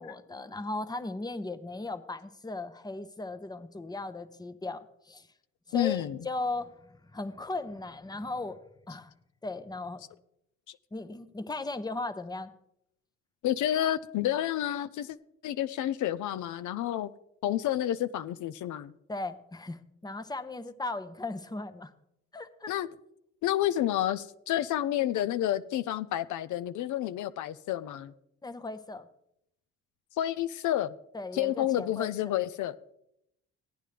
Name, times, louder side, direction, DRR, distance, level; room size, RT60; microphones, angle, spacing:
voice 1, 0.0-5.3 5.7-8.6 8.9-9.1 9.4-10.0 10.9-12.5 19.1-21.9 22.3-22.7 28.4-29.1 31.1-32.3, left 2 dB, 15° left, 11 dB, 0.8 m, -37 dB
voice 2, 5.7-6.2 13.4-15.2 15.4-17.1 17.4-18.9 22.7-22.9 23.4-28.1 30.2-30.9 31.3-32.7, left 12 dB, 75° left, 13 dB, 0.6 m, -29 dB
15.5 x 9.2 x 3.3 m, 0.79 s
cardioid pair, 90°, 30 cm